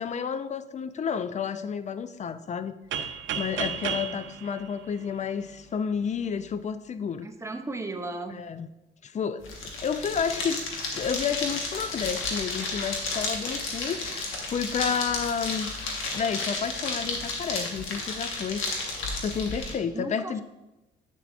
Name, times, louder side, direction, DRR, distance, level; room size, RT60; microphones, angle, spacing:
voice 1, 0.0-3.1 3.4-7.3 8.3-8.7 9.0-9.4 9.8-10.6 10.9-15.7 16.1-18.7 19.2-20.4, left 6 dB, 35° left, 12 dB, 0.4 m, -31 dB
sound 1, 2.9-5.7, right 7 dB, 75° right, 0.6 m, -33 dB
voice 2, 7.2-8.3 19.9-20.4, right 2 dB, 15° right, 6 dB, 0.7 m, -35 dB
sound 2, 9.4-19.7, left 3 dB, 85° left, 1.4 m, -32 dB
8.4 x 6.8 x 2.5 m, 0.97 s
cardioid pair, 90°, 20 cm